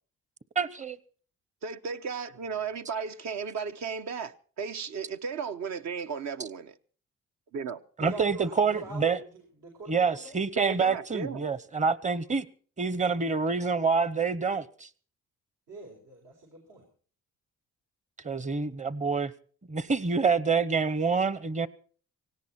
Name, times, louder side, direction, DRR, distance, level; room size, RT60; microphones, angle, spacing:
voice 1, 0.6-1.0 8.0-9.2 9.9-12.5 12.8-14.9 18.2-19.3 19.7-21.7, right 5 dB, 25° right, 0.9 m, -27 dB
voice 2, 1.6-6.7 7.5-7.8 10.5-11.4, right 6 dB, 65° right, 1.0 m, -35 dB
voice 3, 8.0-9.1 9.6-10.4 15.7-16.8, right 3 dB, 85° right, 5.0 m, -43 dB
17.5 x 17.5 x 4.4 m
cardioid pair, 90°, 30 cm